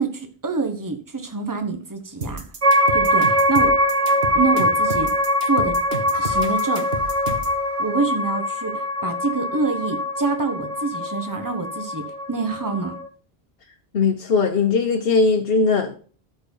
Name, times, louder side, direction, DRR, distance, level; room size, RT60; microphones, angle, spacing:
voice 1, 0.0-2.4 2.9-3.8 4.3-5.8 6.2-6.9 7.8-13.0, right 4 dB, 20° right, 6 dB, 1.1 m, -26 dB
sound 1, 2.2-7.6, right 2 dB, 70° right, 1.8 m, -31 dB
sound 2, 2.6-13.1, left 1 dB, 35° right, 0.8 m, -22 dB
voice 2, 13.9-16.0, left 4 dB, 65° left, 2 dB, 1.1 m, -19 dB
13.0 x 4.7 x 5.4 m, 0.41 s
omnidirectional pair, 1.1 m